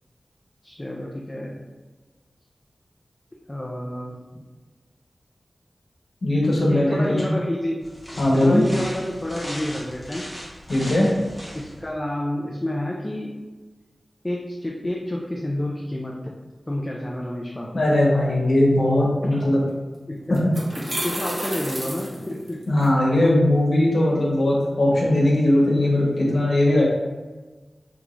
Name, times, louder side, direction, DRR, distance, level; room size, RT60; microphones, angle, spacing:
voice 1, 0.6-1.6 3.5-4.4 6.6-7.8 8.1-10.3 11.5-13.3 14.2-16.2 16.7-17.8 19.2-19.4 20.1-20.4 20.8-22.6, left 1 dB, 25° left, -2 dB, 0.4 m, -29 dB
voice 2, 6.2-7.3 8.2-8.6 10.7-11.1 17.7-19.6 20.3-20.5 22.7-26.8, left 1 dB, 75° left, -5 dB, 1.1 m, -19 dB
sound 1, 7.8-11.9, equal, ahead, 1.1 m, -38 dB
sound 2, 19.7-19.8 20.3-22.9, right 1 dB, 40° right, 0.9 m, -31 dB
3.5 x 3.1 x 2.5 m, 1.3 s
wide cardioid pair, 70°, 0 cm